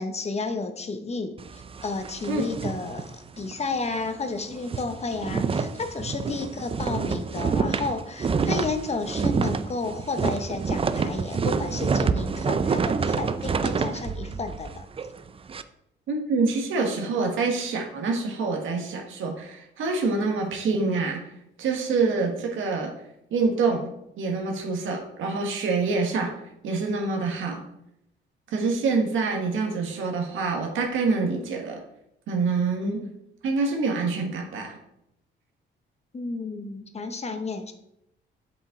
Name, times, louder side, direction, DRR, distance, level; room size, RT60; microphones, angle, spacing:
voice 1, 0.0-14.9 36.1-37.7, left 3 dB, 35° left, 8 dB, 1.0 m, -32 dB
sound 1, 1.4-3.7 4.0-4.1 4.4-15.6, right 5 dB, 30° right, 0.5 m, -28 dB
voice 2, 16.1-21.2 21.6-22.9 23.3-23.9 24.2-26.3 26.6-27.6 28.5-31.8 32.3-33.1 33.4-34.8, right 4 dB, 80° right, 1 dB, 1.4 m, -26 dB
7.9 x 5.3 x 3.7 m, 0.80 s
cardioid pair, 90°, 20 cm